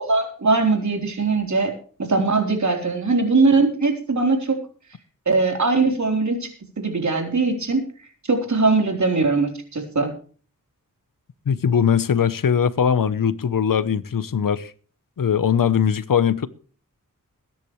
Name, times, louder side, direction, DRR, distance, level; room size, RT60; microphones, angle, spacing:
voice 1, 0.0-1.7 2.0-4.6 5.3-6.5 6.8-7.8 8.3-10.1, right 3 dB, 60° right, 3.9 m, -20 dB
voice 2, 11.5-14.7 15.2-16.5, left 7 dB, 80° left, 0.9 m, -20 dB
22.0 x 10.5 x 3.2 m
wide cardioid pair, 75°, 33 cm